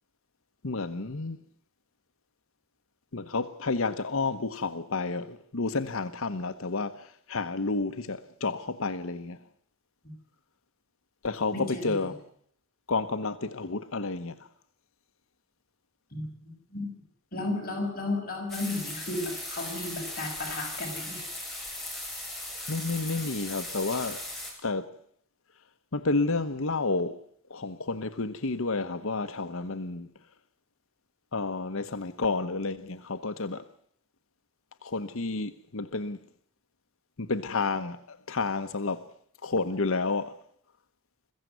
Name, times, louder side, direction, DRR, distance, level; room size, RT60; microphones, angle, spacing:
voice 1, 0.6-1.4 3.1-9.4 11.2-12.2 12.9-14.4 22.7-24.2 24.6-24.9 25.9-27.2 27.5-30.1 31.3-33.7 34.8-36.2 37.2-39.1 39.4-40.4, left 3 dB, 70° left, 1.1 m, -30 dB
voice 2, 11.5-12.0 16.1-16.9 17.3-21.2, left 2 dB, 45° left, 6.7 m, -34 dB
sound 1, 18.5-24.5, left 1 dB, ahead, 8.0 m, -38 dB
22.5 x 15.5 x 9.4 m
head